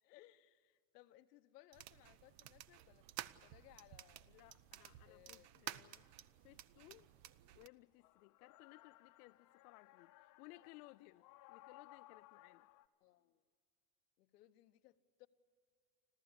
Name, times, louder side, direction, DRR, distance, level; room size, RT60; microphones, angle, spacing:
voice 1, 0.0-3.1 3.4-4.3 5.1-5.5 13.0-13.4 14.2-15.3, left 16 dB, 90° left, 11 dB, 1.0 m, -64 dB
sound 1, 1.7-7.7, right 13 dB, 55° right, 0.8 m, -53 dB
voice 2, 4.3-6.0 6.4-7.1 7.6-12.7, left 20 dB, 75° left, 11 dB, 0.5 m, -61 dB
sound 2, 4.7-4.8 7.2-12.9, left 16 dB, 45° left, 0.8 m, -62 dB
26.0 x 14.5 x 9.8 m, 2.2 s
supercardioid pair, 130°, 46 cm